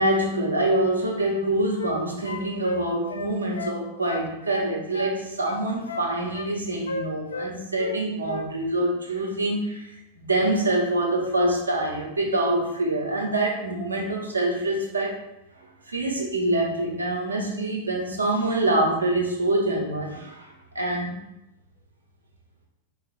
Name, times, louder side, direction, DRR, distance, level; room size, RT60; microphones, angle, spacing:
voice 1, 0.0-15.2 15.6-21.2, right 1 dB, 80° right, -1 dB, 0.9 m, -25 dB
sound 1, 1.3-3.8 4.0-5.2 5.4-6.5 6.9-8.0 8.2-8.5, left 2 dB, 75° left, 0.4 m, -34 dB
4.4 x 2.4 x 4.0 m, 0.90 s
figure-of-eight pair, 90°, 0 cm